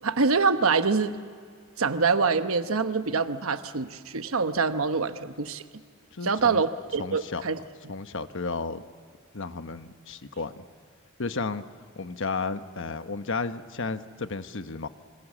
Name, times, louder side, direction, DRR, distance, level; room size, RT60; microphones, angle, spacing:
voice 1, 0.0-1.1 1.8-5.6 6.2-7.6, right 4 dB, 80° right, 10 dB, 1.0 m, -25 dB
voice 2, 6.1-6.6 7.0-7.5 7.9-8.8 9.3-10.6 11.2-11.6 11.9-14.9, left 4 dB, 65° left, 10 dB, 1.1 m, -33 dB
27.0 x 25.5 x 7.4 m, 2.1 s
head